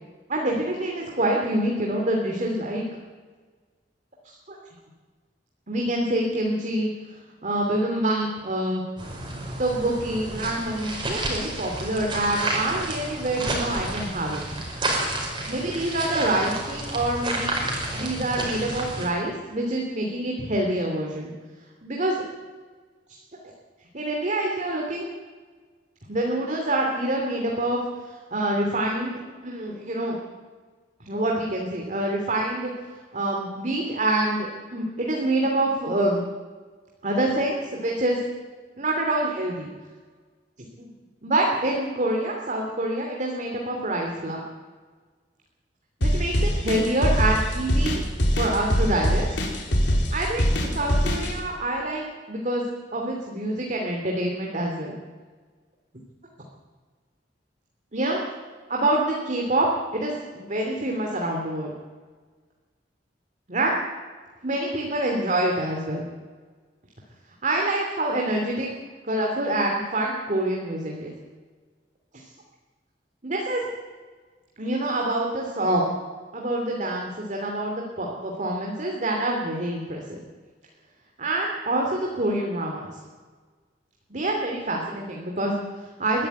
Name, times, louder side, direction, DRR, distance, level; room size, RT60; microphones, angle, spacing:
voice 1, 0.3-2.8 4.2-4.6 5.7-6.9 7.4-8.8 9.6-14.4 15.5-17.5 17.9-21.3 21.8-22.2 23.1-23.2 23.9-25.1 26.1-27.8 28.0-30.2 31.1-32.7 33.1-36.2 37.0-38.2 38.8-39.7 40.8-40.9 41.2-44.4 46.0-48.0 48.4-49.3 50.1-52.6 52.9-55.0 57.9-58.2 58.7-59.7 59.9-61.7 63.5-63.8 64.4-66.0 67.4-68.7 69.0-71.1 72.1-72.3 73.2-73.6 74.6-75.8 76.3-80.2 81.2-83.0 84.1-86.3, right 1 dB, 45° right, 0 dB, 2.9 m, -26 dB
sound 1, 9.0-19.1, right 1 dB, 25° right, 5.2 m, -30 dB
sound 2, 46.0-51.3, equal, 75° left, 4.3 m, -22 dB
21.5 x 13.0 x 9.2 m, 1.5 s
head